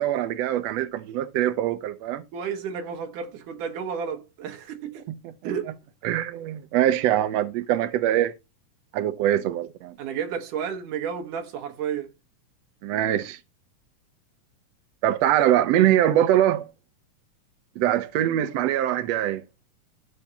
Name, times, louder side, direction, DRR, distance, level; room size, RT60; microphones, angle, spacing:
voice 1, 0.0-2.2 5.1-5.3 6.0-8.3 8.9-9.9 12.8-13.4 15.0-16.7 17.8-19.4, right 12 dB, 85° right, 1.4 m, -23 dB
voice 2, 2.3-5.1 5.4-5.7 10.0-12.1, right 7 dB, 70° right, 2.8 m, -32 dB
13.0 x 6.1 x 2.9 m
omnidirectional pair, 3.9 m